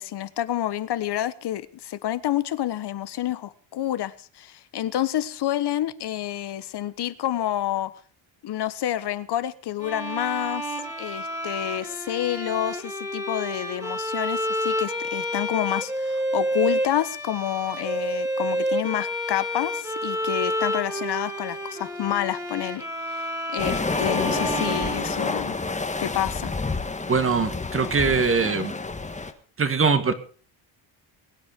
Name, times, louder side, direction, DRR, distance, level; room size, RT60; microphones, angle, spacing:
voice 1, 0.0-7.9 8.4-25.6 26.0-26.6, left 12 dB, 55° left, 1.3 m, -29 dB
Bowed string instrument, 9.8-25.7, equal, 5° right, 3.3 m, -30 dB
sound 1, 23.6-29.3, left 3 dB, 15° left, 1.6 m, -29 dB
voice 2, 27.0-28.8 29.6-30.1, right 5 dB, 25° right, 1.9 m, -22 dB
22.0 x 9.6 x 5.3 m
cardioid pair, 130°, 47 cm